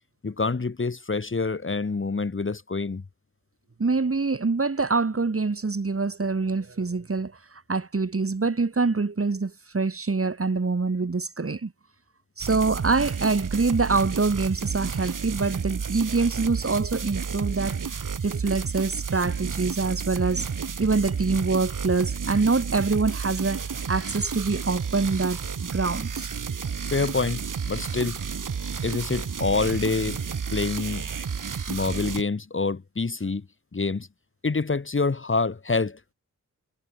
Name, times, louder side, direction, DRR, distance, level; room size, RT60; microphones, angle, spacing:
voice 1, 0.2-3.0 26.9-28.2 28.8-30.2 30.5-31.1 31.7-33.4 33.7-34.1 34.4-36.0, left 4 dB, 40° left, 2.3 m, -26 dB
voice 2, 3.8-7.3 7.7-11.7 12.4-17.8 18.2-20.4 20.8-26.3, right 4 dB, 45° right, 6.3 m, -25 dB
sound 1, 12.4-32.2, right 6 dB, 75° right, 4.5 m, -31 dB
wide cardioid pair, 80°, 32 cm